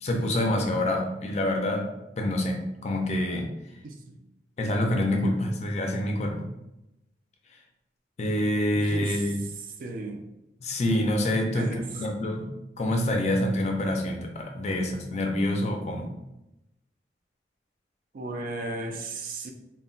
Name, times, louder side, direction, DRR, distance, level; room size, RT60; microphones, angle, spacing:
voice 1, 0.0-1.9 2.2-3.5 4.6-6.5 8.2-9.4 10.6-12.5 12.8-16.1, left 1 dB, 40° left, 2 dB, 0.4 m, -26 dB
voice 2, 3.8-4.2 8.7-9.2 9.8-10.2 11.5-11.9 18.1-19.5, right 2 dB, 50° right, 4 dB, 0.3 m, -35 dB
2.1 x 2.1 x 3.8 m, 0.90 s
head